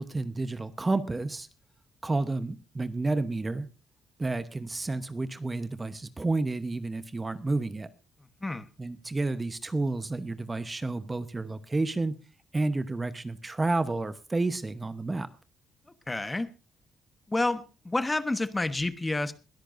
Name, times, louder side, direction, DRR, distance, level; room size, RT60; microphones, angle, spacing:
voice 1, 0.0-1.5 2.0-3.7 4.2-7.9 8.8-12.1 12.5-15.3, right 2 dB, 20° right, 1.0 m, -30 dB
voice 2, 16.1-16.5 17.3-19.3, left 2 dB, 15° left, 1.2 m, -29 dB
21.5 x 13.0 x 2.6 m
cardioid pair, 90°, 0 cm